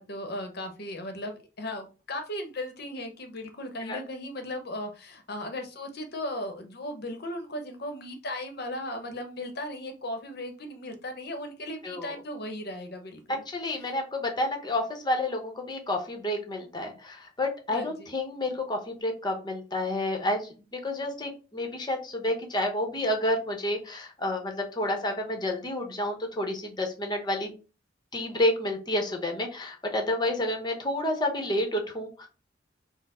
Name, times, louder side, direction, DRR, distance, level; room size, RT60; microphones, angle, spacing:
voice 1, 0.0-13.4 13.8-14.0 17.7-18.1, left 1 dB, 55° left, 6 dB, 0.8 m, -37 dB
voice 2, 13.5-27.5 28.1-32.3, left 1 dB, 25° left, 4 dB, 0.8 m, -30 dB
4.2 x 2.0 x 4.1 m, 0.33 s
head